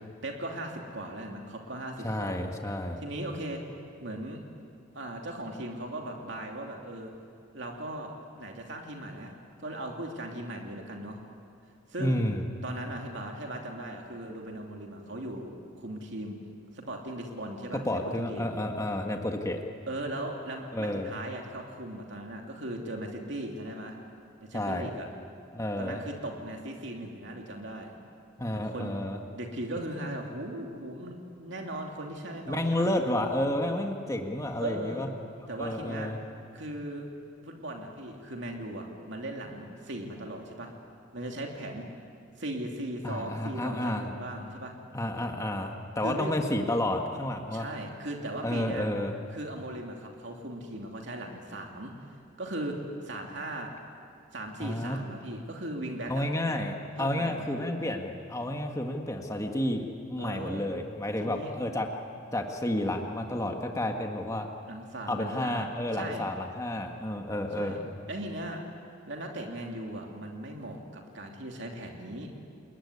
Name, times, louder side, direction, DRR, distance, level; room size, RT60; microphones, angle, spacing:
voice 1, 0.2-2.3 3.0-3.6 4.0-4.4 4.9-7.1 7.5-11.2 11.9-12.2 12.6-16.4 16.7-18.6 19.9-24.0 24.4-25.1 25.8-28.0 28.6-28.9 29.3-32.9 34.6-35.1 35.5-36.1 36.5-37.1 37.4-40.7 41.1-41.9 42.4-44.7 46.0-46.3 47.5-48.9 49.3-51.9 52.4-52.8 53.0-53.7 54.3-56.3 57.0-57.4 60.2-60.7 61.2-61.5 64.6-66.3 67.6-67.8 68.1-68.6 69.1-72.3, right 1 dB, 60° right, 1 dB, 2.8 m, -38 dB
voice 2, 2.0-3.0 12.0-12.4 17.8-19.6 20.7-21.1 24.5-24.9 25.5-26.0 28.4-29.2 32.5-35.1 35.6-36.2 43.0-44.1 44.9-47.7 48.4-49.1 54.6-55.0 56.1-61.9 62.3-64.5 65.1-67.8, left 1 dB, 15° left, 3 dB, 1.7 m, -31 dB
29.5 x 20.5 x 9.8 m, 2.3 s
head